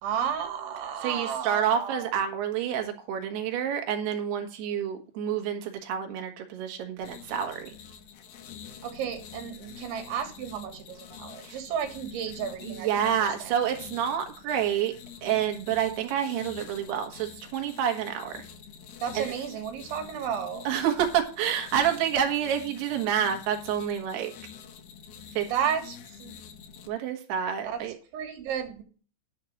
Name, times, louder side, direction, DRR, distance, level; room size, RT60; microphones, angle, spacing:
voice 1, 0.0-2.1 8.8-13.5 19.0-20.7 25.5-26.4 27.7-27.8 28.1-28.8, right 8 dB, 85° right, 6 dB, 4.1 m, -33 dB
voice 2, 1.0-7.8 11.4-11.6 12.6-14.9 15.2-18.4 19.2-19.3 20.7-24.3 25.4-25.5 26.9-27.9, right 9 dB, 65° right, 4 dB, 3.4 m, -28 dB
sound 1, 7.0-26.9, left 8 dB, 90° left, 1.7 m, -46 dB
11.0 x 4.6 x 7.7 m, 0.37 s
omnidirectional pair, 5.3 m